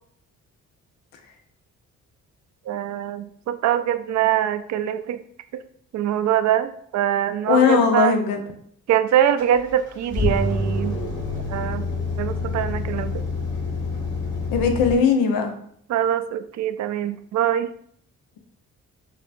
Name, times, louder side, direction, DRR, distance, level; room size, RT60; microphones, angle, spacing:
voice 1, 2.7-5.2 5.5-5.6 5.9-8.2 8.9-11.0 11.5-11.8 12.2-13.2 15.9-17.7, right 10 dB, 55° right, 11 dB, 0.4 m, -23 dB
voice 2, 7.5-8.4 14.5-15.5, left 6 dB, 80° left, 5 dB, 0.7 m, -19 dB
sound 1, 9.4-14.9, left 3 dB, 55° left, 1.4 m, -27 dB
6.3 x 2.2 x 2.5 m, 0.64 s
supercardioid pair, 50°, 34 cm